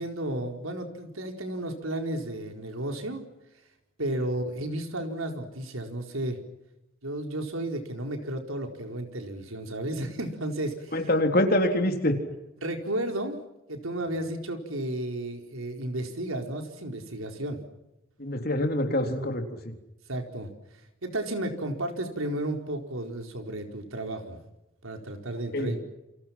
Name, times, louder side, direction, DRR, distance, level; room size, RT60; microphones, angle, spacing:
voice 1, 0.0-3.2 4.0-6.4 7.0-10.9 12.6-13.4 13.7-17.6 20.1-20.5 21.0-24.4 24.8-25.8, right 1 dB, 90° right, 4 dB, 4.5 m, -33 dB
voice 2, 10.9-12.1 18.2-19.7 25.5-25.7, left 1 dB, 45° left, 5 dB, 3.7 m, -25 dB
29.0 x 27.5 x 6.0 m, 0.94 s
head